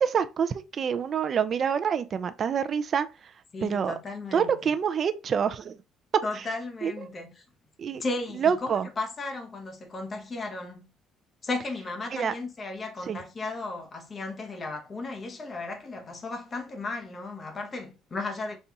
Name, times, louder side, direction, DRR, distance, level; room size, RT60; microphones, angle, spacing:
voice 1, 0.0-3.1 3.6-3.9 4.3-5.8 6.3-6.4 6.8-7.1 7.8-8.0 8.4-8.9 12.1-12.3 13.1-13.2, right 7 dB, 40° right, 0.4 m, -27 dB
voice 2, 3.5-4.6 6.2-7.4 8.0-10.9 11.4-18.6, left 3 dB, 30° left, 0.9 m, -35 dB
5.2 x 2.4 x 2.8 m
cardioid pair, 120°, 0 cm